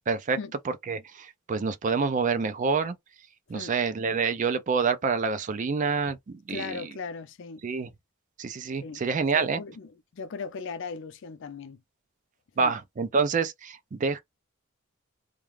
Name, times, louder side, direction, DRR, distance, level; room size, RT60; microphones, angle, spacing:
voice 1, 0.1-0.4 0.9-3.0 3.5-6.9 7.6-7.9 8.4-9.6 12.6-14.2, right 5 dB, 40° right, 0.4 m, -27 dB
voice 2, 6.5-7.6 8.8-9.1 9.3-11.8 12.6-12.7, left 4 dB, 60° left, 0.4 m, -38 dB
2.3 x 2.2 x 3.2 m
head